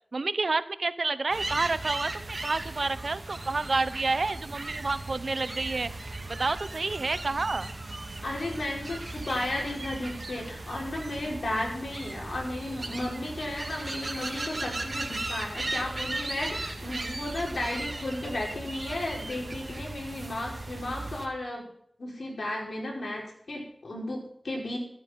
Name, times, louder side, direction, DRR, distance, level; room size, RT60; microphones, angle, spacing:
voice 1, 0.1-5.9 6.3-7.7, right 3 dB, 65° right, 15 dB, 0.8 m, -29 dB
sound 1, 1.3-21.3, right 2 dB, 50° right, 2.1 m, -37 dB
voice 2, 8.2-21.6 22.0-24.8, left 1 dB, 80° left, -1 dB, 4.7 m, -34 dB
14.0 x 8.5 x 5.7 m, 0.67 s
cardioid pair, 45°, 0 cm